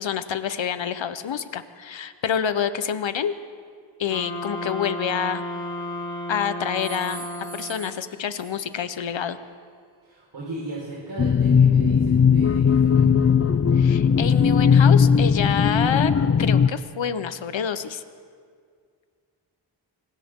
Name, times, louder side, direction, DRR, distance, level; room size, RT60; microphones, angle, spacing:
voice 1, 0.0-3.3 4.0-5.4 6.3-7.2 7.5-9.4 13.7-16.1 16.4-18.0, left 8 dB, 80° left, 11 dB, 1.1 m, -27 dB
sound 1, 4.1-8.0, left 1 dB, 55° left, 5.9 m, -33 dB
sound 2, 5.6-6.3 6.8-9.0, right 5 dB, 50° right, 3.7 m, -44 dB
voice 2, 10.0-13.4, right 2 dB, 70° right, -5 dB, 5.1 m, -37 dB
sound 3, 11.2-16.7, left 6 dB, 35° left, 0.5 m, -18 dB
29.0 x 25.0 x 3.8 m, 2.1 s
wide cardioid pair, 140°, 45 cm